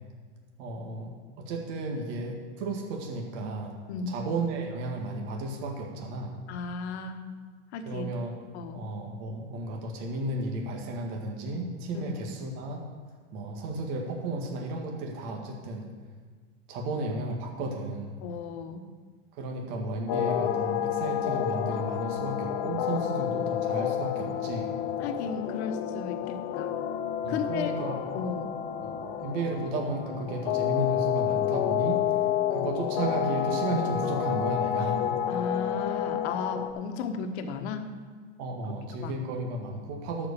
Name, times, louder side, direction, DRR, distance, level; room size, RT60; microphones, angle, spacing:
voice 1, 0.6-3.7 4.1-6.4 7.9-8.3 8.7-12.8 13.3-15.9 16.7-18.1 19.4-24.7 27.2-28.0 28.8-32.0 32.5-35.1 38.4-40.3, right 2 dB, 55° right, 0 dB, 2.0 m, -33 dB
voice 2, 3.9-4.2 6.5-7.3 7.7-8.2 8.5-8.9 11.9-12.1 18.2-18.9 23.0-23.1 25.0-26.7 27.3-28.5 35.3-37.9 38.6-38.7 39.0-39.5, left 5 dB, 65° left, 7 dB, 1.3 m, -35 dB
sound 1, 20.1-36.7, left 9 dB, 50° left, 1.0 m, -29 dB
12.0 x 5.2 x 6.9 m, 1.5 s
hypercardioid pair, 120°, 35 cm